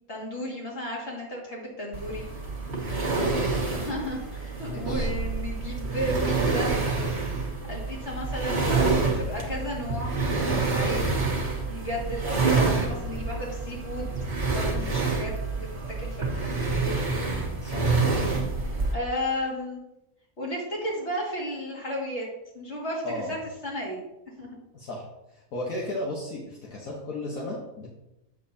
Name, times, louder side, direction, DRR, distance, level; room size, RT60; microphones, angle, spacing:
voice 1, 0.1-2.2 3.7-6.7 7.7-11.0 11.7-14.1 14.5-15.7 16.0-17.0 18.9-19.8 20.4-22.3 22.5-23.4 23.6-24.0 24.4-24.5, equal, 50° left, -3 dB, 2.4 m, -33 dB
sound 1, 1.9-18.9, right 3 dB, 35° right, 1.3 m, -27 dB
voice 2, 3.1-3.4 4.6-5.1 17.6-17.9 23.0-23.4 24.7-25.1 25.3-27.9, left 1 dB, 75° left, -4 dB, 1.6 m, -35 dB
8.4 x 6.8 x 2.8 m, 0.89 s
omnidirectional pair, 1.5 m